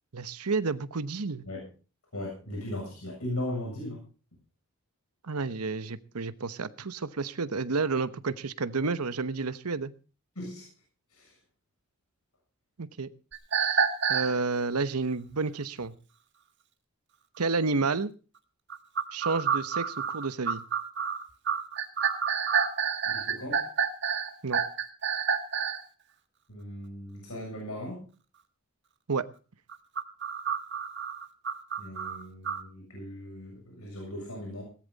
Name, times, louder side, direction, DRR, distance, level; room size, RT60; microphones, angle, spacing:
voice 1, 0.1-1.5 5.3-9.9 12.8-13.1 14.1-15.9 17.4-18.1 19.1-20.6 24.4-24.6 29.1-29.3, right 4 dB, 90° right, 14 dB, 1.0 m, -30 dB
voice 2, 2.1-4.0 10.4-10.7 11.1-11.3 23.0-23.7 26.5-28.1 31.8-34.6, left 1 dB, 85° left, -1 dB, 7.2 m, -38 dB
sound 1, 13.3-14.3 18.7-25.8 29.7-32.6, right 7 dB, 50° right, 1.7 m, -29 dB
17.5 x 13.5 x 4.0 m, 0.36 s
head